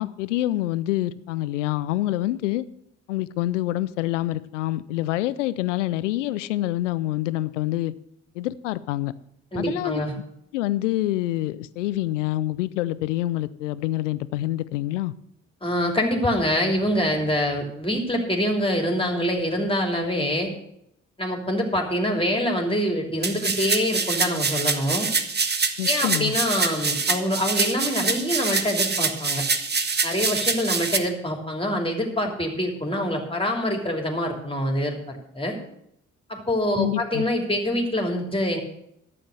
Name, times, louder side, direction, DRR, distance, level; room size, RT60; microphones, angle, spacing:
voice 1, 0.0-2.7 3.1-7.9 8.4-9.1 9.6-10.0 10.5-15.1 25.8-26.3 36.8-37.3, left 15 dB, 85° left, 18 dB, 0.5 m, -26 dB
voice 2, 9.5-10.1 15.6-20.5 21.2-25.1 25.8-29.4 30.0-35.6 36.3-38.6, equal, 15° left, 2 dB, 2.9 m, -25 dB
sound 1, 23.2-31.0, right 4 dB, 30° right, 1.1 m, -25 dB
12.0 x 7.7 x 6.4 m, 0.76 s
hypercardioid pair, 45°, 36 cm